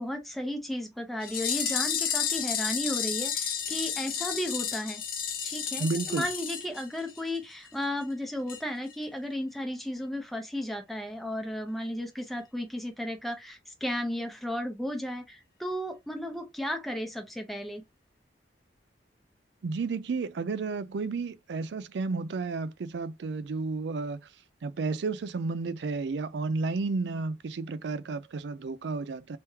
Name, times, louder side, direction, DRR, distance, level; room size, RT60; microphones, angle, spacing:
voice 1, 0.0-5.0 5.4-17.8, left 1 dB, ahead, 0.6 m, -34 dB
sound 1, 1.2-7.4 7.7-7.8 8.0-8.1 8.5-8.6 8.9-9.0, left 8 dB, 50° left, 0.8 m, -32 dB
voice 2, 5.8-6.3 19.6-24.3 24.6-29.4, right 4 dB, 70° right, 0.4 m, -32 dB
3.4 x 3.1 x 2.8 m
head